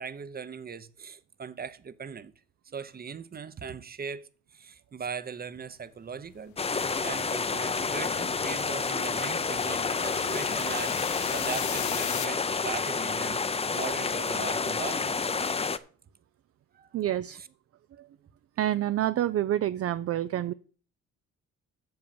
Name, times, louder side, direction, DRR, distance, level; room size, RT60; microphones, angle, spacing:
voice 1, 0.0-2.3 2.7-11.0 11.3-13.4 13.7-15.3 16.7-16.9 17.3-17.5, right 6 dB, 30° right, 0.8 m, -39 dB
sound 1, 6.3-12.3, left 14 dB, 75° left, 0.6 m, -39 dB
sound 2, 6.6-15.8, left 4 dB, 20° left, 0.6 m, -29 dB
voice 2, 16.9-17.4 17.9-18.1 18.6-20.5, right 12 dB, 50° right, 0.4 m, -28 dB
7.8 x 7.0 x 7.0 m
cardioid pair, 90°, 30 cm